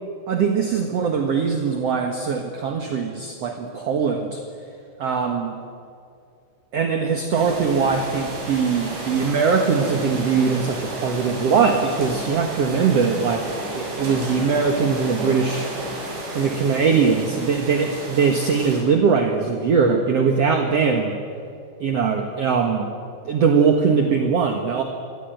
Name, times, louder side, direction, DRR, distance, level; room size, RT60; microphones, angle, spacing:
voice 1, 0.3-4.4 5.0-5.6 6.7-15.7 16.3-21.2 21.8-22.9 23.2-24.8, right 5 dB, 55° right, 4 dB, 1.9 m, -21 dB
sound 1, 7.3-18.8, right 1 dB, 80° right, 9.2 m, -32 dB
26.0 x 23.5 x 9.2 m, 2.4 s
omnidirectional pair, 5.0 m